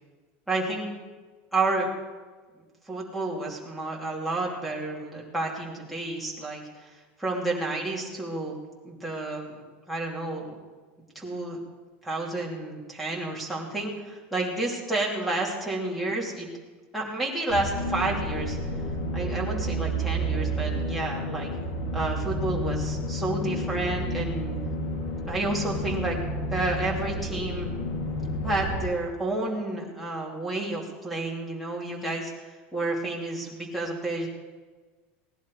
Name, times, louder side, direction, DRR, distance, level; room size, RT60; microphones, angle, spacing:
voice 1, 0.5-0.9 1.5-1.9 2.9-6.9 7.2-8.6 8.8-10.6 11.1-11.6 12.0-16.5 16.9-18.6 19.1-21.5 21.9-24.6 25.2-26.2 26.5-27.7 28.4-32.3 32.7-34.3, right 2 dB, ahead, -1 dB, 2.8 m, -30 dB
sound 1, 17.5-28.8, right 1 dB, 65° left, 2.7 m, -30 dB
18.0 x 11.0 x 5.0 m, 1.4 s
supercardioid pair, 160°, 6 cm